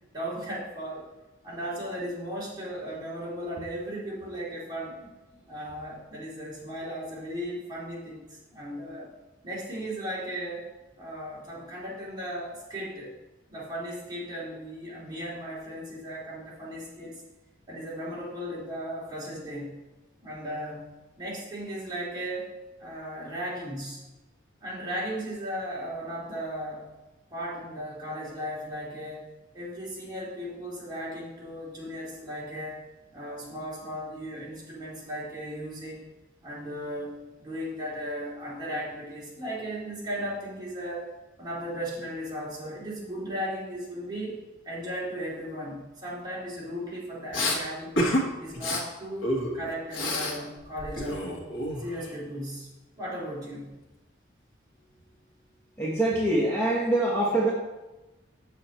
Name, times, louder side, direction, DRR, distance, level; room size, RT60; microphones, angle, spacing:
voice 1, 0.1-1.1 1.4-5.0 5.5-9.1 9.4-10.7 11.0-13.1 13.5-17.2 17.7-19.7 20.2-20.9 21.2-22.5 22.8-24.0 24.6-26.9 27.3-29.2 29.5-32.8 33.1-36.0 36.4-41.1 41.4-44.3 44.6-48.0 48.4-49.3 49.5-51.5 51.8-52.7 53.0-53.7, equal, 20° right, -7 dB, 2.7 m, -36 dB
Respiratory sounds, 47.3-47.6 48.0-48.2 48.5-48.8 49.2-50.4 50.6-52.1, left 1 dB, 75° left, 1.4 m, -28 dB
voice 2, 55.8-57.5, right 1 dB, 10° left, -5 dB, 1.2 m, -24 dB
7.5 x 6.9 x 4.3 m, 1.1 s
head